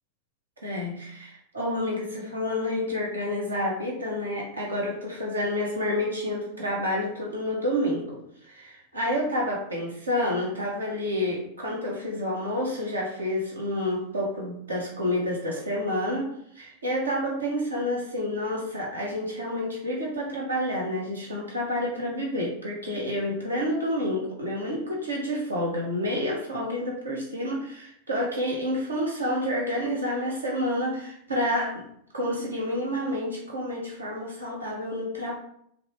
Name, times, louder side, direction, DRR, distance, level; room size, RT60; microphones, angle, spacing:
voice 1, 0.6-31.8 32.1-35.3, left 1 dB, 75° right, -2 dB, 1.6 m, -29 dB
6.8 x 3.2 x 4.4 m, 0.70 s
figure-of-eight pair, 90°, 0 cm